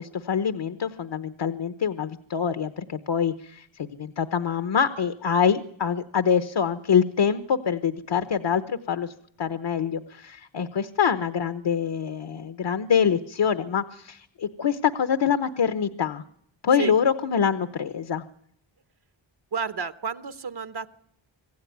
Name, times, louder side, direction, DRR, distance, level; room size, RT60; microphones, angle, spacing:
voice 1, 0.0-9.1 9.4-16.2 16.6-18.2, left 7 dB, 65° left, 10 dB, 1.1 m, -25 dB
voice 2, 19.5-20.9, right 6 dB, 60° right, 11 dB, 1.0 m, -31 dB
26.0 x 16.0 x 9.4 m, 0.69 s
wide cardioid pair, 155°, 45 cm